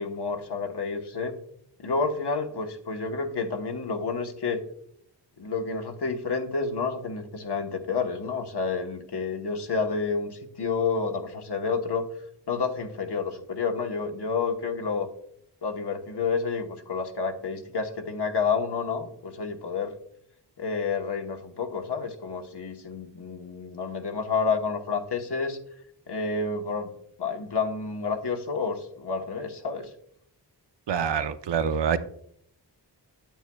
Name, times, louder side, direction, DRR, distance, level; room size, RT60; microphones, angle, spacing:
voice 1, 0.0-1.4 1.8-4.6 5.4-12.1 12.5-15.1 15.6-19.9 20.6-25.6 26.1-26.9 27.2-29.9, left 4 dB, 70° left, 3 dB, 1.1 m, -29 dB
voice 2, 30.9-32.0, right 7 dB, 80° right, 10 dB, 0.6 m, -26 dB
9.0 x 8.2 x 2.3 m, 0.68 s
wide cardioid pair, 55°, 42 cm